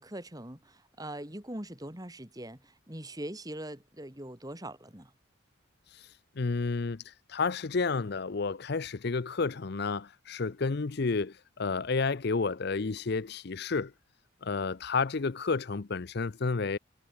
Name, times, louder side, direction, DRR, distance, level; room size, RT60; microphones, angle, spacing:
voice 1, 0.0-5.1, right 1 dB, 20° right, 3.1 m, -42 dB
voice 2, 5.9-13.9 14.4-16.8, left 4 dB, 55° left, 0.6 m, -31 dB
head